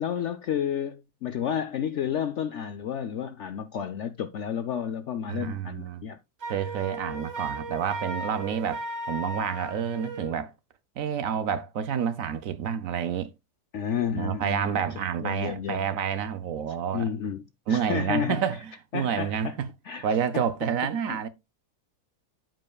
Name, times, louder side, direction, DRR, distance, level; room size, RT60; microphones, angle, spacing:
voice 1, 0.0-6.2 13.7-14.8 15.2-15.8 16.9-17.4 17.7-18.4 18.9-19.6 19.9-20.1 20.3-20.4 21.1-21.2, left 8 dB, 70° left, 0.7 m, -31 dB
voice 2, 5.3-6.0 6.5-10.5 11.0-13.3 14.1-17.1 17.7-19.7 20.0-21.3, right 8 dB, 65° right, 1.0 m, -29 dB
Wind instrument woodwind instrument, 6.4-10.3, right 1 dB, 45° right, 1.3 m, -36 dB
13.0 x 5.3 x 2.3 m
omnidirectional pair, 1.7 m